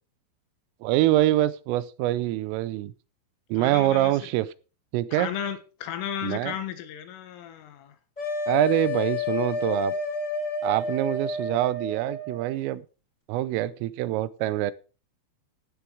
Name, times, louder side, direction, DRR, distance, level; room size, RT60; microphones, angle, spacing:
voice 1, 0.8-2.9 3.5-4.5 4.9-5.3 6.2-6.6 8.5-9.9 10.6-12.8 13.3-14.7, right 15 dB, 85° right, 3.3 m, -25 dB
voice 2, 3.6-4.1 5.1-8.0, left 9 dB, 80° left, 4.0 m, -34 dB
sound 1, 8.2-12.6, left 3 dB, 10° left, 2.3 m, -30 dB
15.5 x 7.0 x 4.7 m
omnidirectional pair, 5.8 m